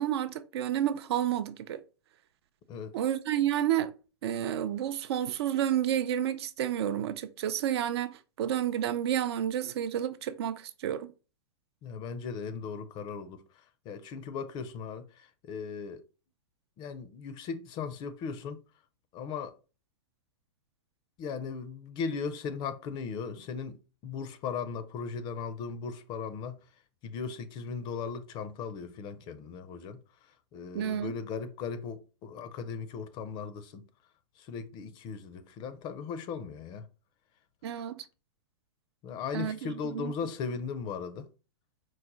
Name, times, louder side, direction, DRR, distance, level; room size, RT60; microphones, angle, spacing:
voice 1, 0.0-1.8 2.9-3.9 4.2-11.1 30.7-31.1 37.6-38.1 39.3-40.1, right 10 dB, 65° right, 0.5 m, -30 dB
voice 2, 11.8-16.0 16.8-18.6 19.1-19.6 21.2-23.8 24.0-26.6 27.0-30.0 30.3-33.9 34.4-36.9 39.0-41.3, left 5 dB, 30° left, 0.5 m, -37 dB
4.7 x 2.1 x 3.8 m
hypercardioid pair, 130°, 14 cm